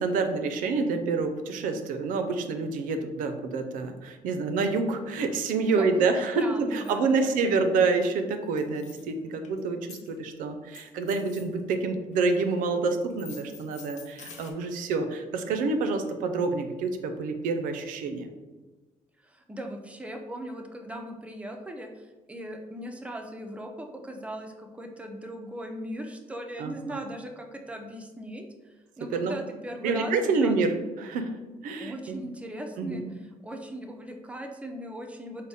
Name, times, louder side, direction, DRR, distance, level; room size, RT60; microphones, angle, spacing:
voice 1, 0.0-18.3 26.6-27.0 29.1-29.3 29.8-31.3 31.6-32.2 32.8-33.0, right 4 dB, 85° right, 7 dB, 0.4 m, -27 dB
voice 2, 5.8-7.4 19.2-30.5 31.8-33.0 33.4-35.5, right 1 dB, 10° right, 3 dB, 0.4 m, -39 dB
sound 1, 6.8-7.0 7.6-7.7 7.9-8.2 8.6-9.6 9.9-10.1 10.7-11.5 12.1-12.6 13.1-14.5, left 5 dB, 60° left, 0.5 m, -48 dB
4.0 x 2.1 x 3.4 m, 1.2 s
cardioid pair, 110°, 13 cm